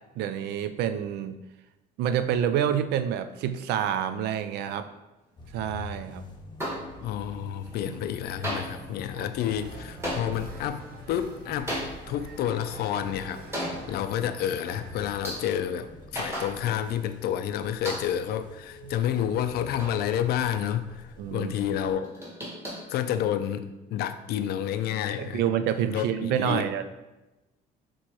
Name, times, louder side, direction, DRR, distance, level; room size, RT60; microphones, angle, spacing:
voice 1, 0.2-1.4 2.0-4.9 5.5-6.2 7.9-8.0 9.2-9.3 21.2-21.5 25.2-26.8, right 9 dB, 80° right, 11 dB, 0.4 m, -28 dB
sound 1, 5.4-21.9, left 3 dB, 25° left, 0.7 m, -47 dB
sound 2, 6.6-7.4 7.6-8.2 8.4-17.0 17.3-17.4 17.8-18.4 18.9-20.6 20.9-21.0 21.3-21.4 21.7-23.7, equal, 15° right, 1.6 m, -38 dB
voice 2, 7.0-10.8 11.1-11.8 12.1-13.4 13.9-22.2 22.9-25.5 25.9-26.7, left 10 dB, 70° left, 10 dB, 0.4 m, -29 dB
sound 3, 9.4-15.1, right 3 dB, 60° right, 0.8 m, -45 dB
6.2 x 3.0 x 2.9 m, 1.0 s
cardioid pair, 110°, 17 cm